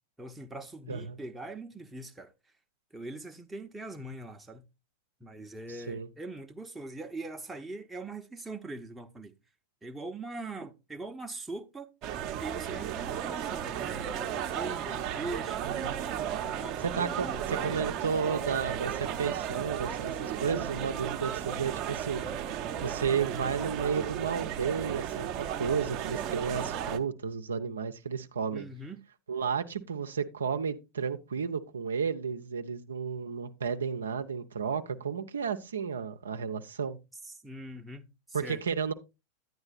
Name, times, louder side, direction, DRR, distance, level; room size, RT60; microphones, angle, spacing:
voice 1, 0.2-2.3 2.9-4.6 5.2-9.4 9.8-11.9 12.4-15.9 16.3-17.8 28.5-29.0 37.2-38.6, right 2 dB, 10° right, 0.8 m, -42 dB
voice 2, 0.9-1.2 5.9-6.1 15.6-16.0 16.8-22.2 22.8-28.7 29.3-37.0 38.3-38.9, right 6 dB, 70° right, 0.6 m, -32 dB
sound 1, 12.0-27.0, right 9 dB, 35° right, 0.7 m, -34 dB
10.5 x 9.6 x 2.4 m
figure-of-eight pair, 90°, 0 cm